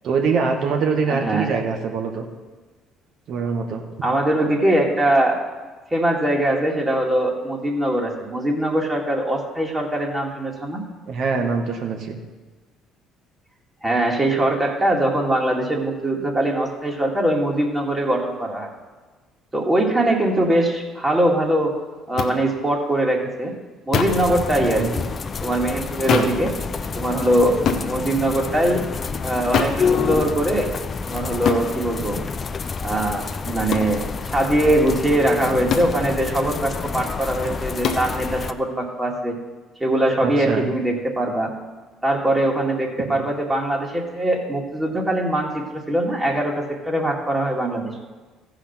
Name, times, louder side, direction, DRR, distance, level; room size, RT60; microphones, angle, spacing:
voice 1, 0.0-2.3 3.3-4.1 11.1-12.2 24.6-24.9 26.1-26.3 40.2-40.7 43.1-43.2, right 5 dB, 60° right, 3 dB, 1.6 m, -24 dB
voice 2, 1.1-1.5 4.0-5.4 5.9-10.8 13.8-18.7 19.5-21.8 22.1-23.5 23.9-25.0 25.4-26.5 26.9-28.9 29.2-30.7 31.0-32.2 32.8-39.4 39.8-41.5 42.0-47.9, right 1 dB, 20° right, -1 dB, 2.3 m, -22 dB
sound 1, 22.2-22.3 23.9-24.3 26.1-26.4 27.7-27.9 29.5-29.8 31.5-31.7 33.7-33.9 35.7-36.0 37.8-38.1, left 6 dB, 60° left, 1.1 m, -22 dB
sound 2, 24.1-38.5, left 5 dB, 40° left, 0.6 m, -28 dB
14.5 x 5.0 x 6.0 m, 1.3 s
hypercardioid pair, 65°, 0 cm